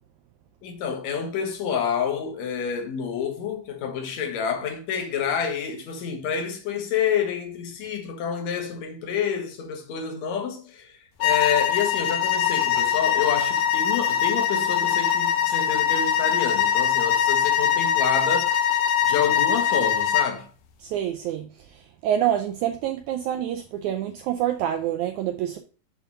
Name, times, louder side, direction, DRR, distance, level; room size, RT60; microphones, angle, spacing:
voice 1, 0.6-18.8 19.0-20.5, left 7 dB, 60° left, 2.2 m, -28 dB
sound 1, 11.2-20.4, left 9 dB, 80° left, 2.3 m, -22 dB
voice 2, 20.8-25.6, right 11 dB, 85° right, 1.7 m, -27 dB
7.2 x 3.5 x 5.5 m
omnidirectional pair, 4.0 m